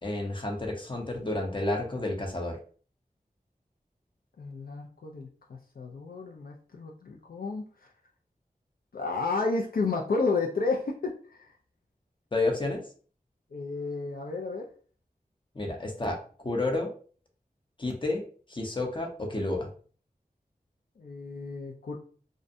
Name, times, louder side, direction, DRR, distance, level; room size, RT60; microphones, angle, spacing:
voice 1, 0.0-2.6 12.3-12.8 15.5-16.9 17.8-18.2 18.5-19.7, left 2 dB, 30° left, 1 dB, 0.7 m, -30 dB
voice 2, 4.4-7.6 8.9-11.5 13.5-14.7 21.0-22.0, left 3 dB, 70° left, 0 dB, 0.4 m, -32 dB
2.5 x 2.1 x 2.6 m, 0.42 s
wide cardioid pair, 45°, 16 cm